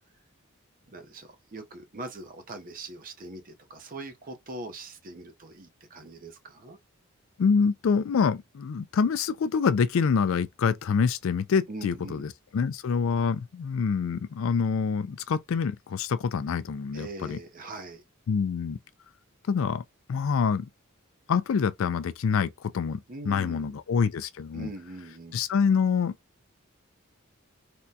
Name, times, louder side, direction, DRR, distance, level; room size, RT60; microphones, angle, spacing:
voice 1, 0.9-6.8 11.7-12.2 16.9-18.0 23.1-23.7 24.5-25.4, right 2 dB, 40° right, 0.6 m, -42 dB
voice 2, 7.4-17.4 18.3-18.8 19.5-19.8 20.1-20.7 21.3-24.7 25.3-26.1, left 6 dB, 65° left, 0.4 m, -26 dB
3.5 x 2.2 x 2.7 m
head